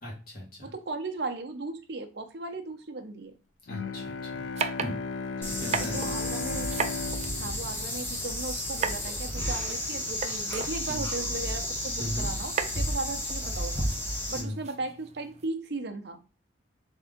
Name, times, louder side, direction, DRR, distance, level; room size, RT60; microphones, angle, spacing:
voice 1, 0.0-0.7 3.7-4.3 4.8-5.0 5.4-6.1 10.9-11.1 12.0-12.3 14.3-14.6, equal, 45° left, -3 dB, 2.0 m, -38 dB
voice 2, 0.6-3.3 5.9-6.9 7.4-13.9 14.3-16.2, right 3 dB, 55° right, 5 dB, 0.7 m, -36 dB
Bowed string instrument, 3.7-8.9, left 4 dB, 75° left, 0.3 m, -36 dB
sound 1, 4.6-15.5, right 6 dB, 35° right, 0.3 m, -38 dB
sound 2, 5.4-14.4, equal, 10° left, 0.8 m, -32 dB
3.6 x 3.5 x 3.6 m, 0.35 s
head